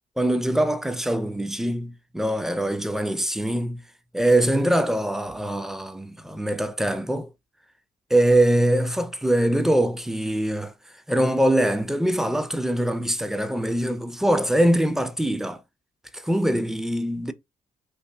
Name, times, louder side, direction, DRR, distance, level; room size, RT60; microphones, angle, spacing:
voice 1, 0.2-3.8 4.1-7.3 8.1-10.7 11.1-15.6 16.1-17.3, right 1 dB, 5° right, 0.3 m, -23 dB
2.6 x 2.5 x 2.2 m
cardioid pair, 70°, 15 cm